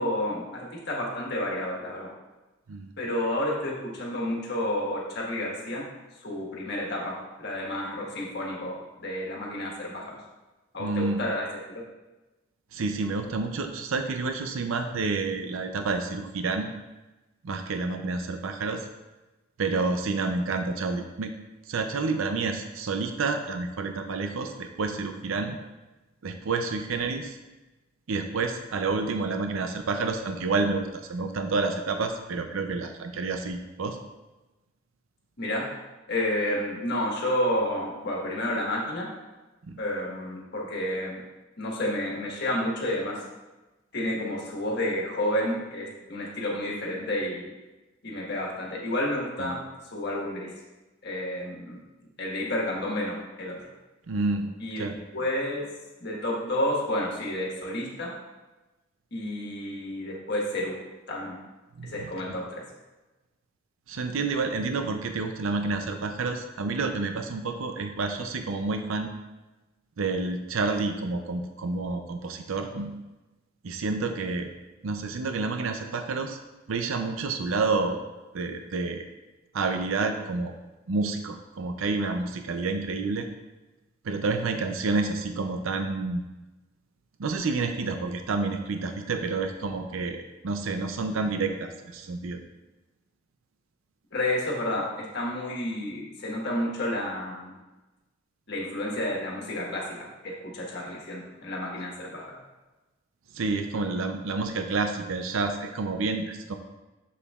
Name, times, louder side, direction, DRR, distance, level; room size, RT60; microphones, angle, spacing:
voice 1, 0.0-2.1 3.0-5.8 6.2-10.2 10.7-11.8 35.4-35.6 36.1-39.1 39.8-41.2 41.6-43.2 43.9-47.5 48.0-49.6 49.9-50.5 51.0-51.8 52.2-53.7 54.6-54.9 55.1-55.7 56.0-58.1 59.1-60.7 61.1-61.4 61.8-62.6 94.1-97.6 98.5-102.4, left 1 dB, 55° left, -3 dB, 1.5 m, -30 dB
voice 2, 10.8-11.2 12.7-16.7 17.4-18.9 19.6-21.3 21.7-25.6 26.2-27.4 28.1-34.0 39.7-39.8 49.4-49.5 54.1-54.5 54.8-55.0 61.8-61.9 63.9-69.1 70.0-73.0 73.6-74.5 74.8-76.4 76.7-78.0 78.3-79.1 79.5-80.5 80.9-83.3 84.0-86.2 87.2-92.4 103.3-106.6, right 3 dB, 80° right, 6 dB, 0.5 m, -29 dB
7.2 x 6.8 x 2.4 m, 1.1 s
head